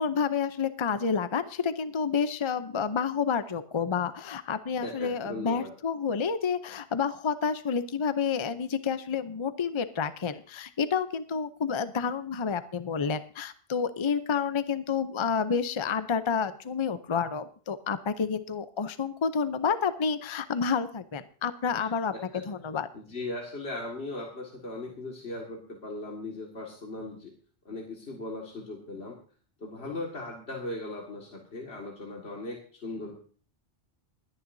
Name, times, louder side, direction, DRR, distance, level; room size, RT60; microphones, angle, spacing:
voice 1, 0.0-22.9, left 6 dB, 35° left, 12 dB, 0.6 m, -29 dB
voice 2, 4.8-5.7 21.7-22.7 22.9-27.3 27.7-29.2 29.6-33.1, left 2 dB, 75° left, -1 dB, 2.3 m, -38 dB
29.0 x 9.9 x 2.7 m, 0.42 s
omnidirectional pair, 1.1 m